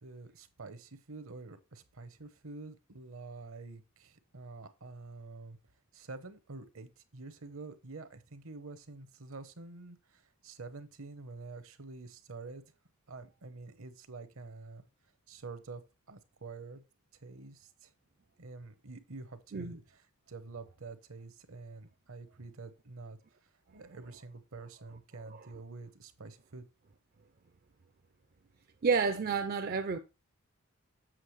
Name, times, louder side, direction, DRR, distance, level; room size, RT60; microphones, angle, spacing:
voice 1, 0.0-5.6 5.9-12.6 13.1-14.8 15.3-15.8 16.1-16.8 17.2-17.9 18.4-19.8 20.3-23.2 23.7-26.6, right 3 dB, 70° right, 1.0 m, -47 dB
voice 2, 28.8-30.0, right 5 dB, 45° right, 0.4 m, -30 dB
7.5 x 6.7 x 3.2 m
head